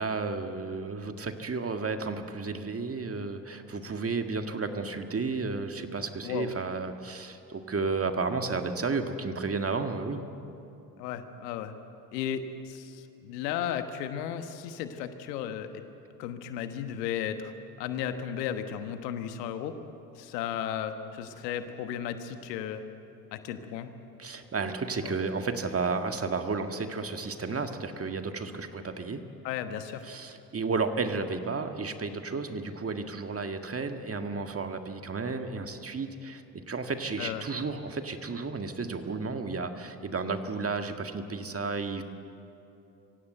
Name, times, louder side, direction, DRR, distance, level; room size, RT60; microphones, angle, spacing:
voice 1, 0.0-10.2 24.2-29.2 30.0-42.0, right 4 dB, 30° right, 6 dB, 1.9 m, -32 dB
voice 2, 6.2-6.5 11.0-11.7 12.1-15.8 16.2-17.5 17.8-19.7 20.2-22.8 23.3-23.9 25.0-25.1 29.4-30.0 37.2-37.4, left 9 dB, 85° left, 9 dB, 1.3 m, -34 dB
25.0 x 16.5 x 8.1 m, 2.8 s
hypercardioid pair, 60°, 48 cm